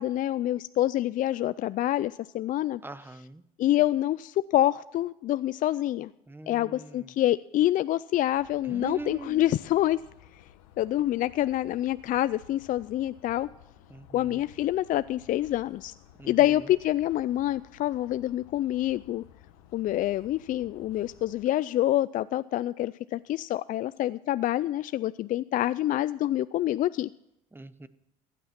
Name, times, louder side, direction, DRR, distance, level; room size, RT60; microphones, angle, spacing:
voice 1, 0.0-2.8 3.6-6.1 6.5-10.0 10.8-13.5 14.1-15.9 16.3-19.2 19.7-27.1, left 13 dB, 55° left, 15 dB, 0.4 m, -27 dB
voice 2, 2.8-3.4 6.3-7.1 8.6-9.5 13.9-14.4 16.2-16.6 27.5-27.9, right 2 dB, 15° right, 14 dB, 0.9 m, -41 dB
sound 1, 8.3-21.4, left 10 dB, 90° left, 1.2 m, -55 dB
15.5 x 9.1 x 5.9 m, 0.82 s
supercardioid pair, 75°, 17 cm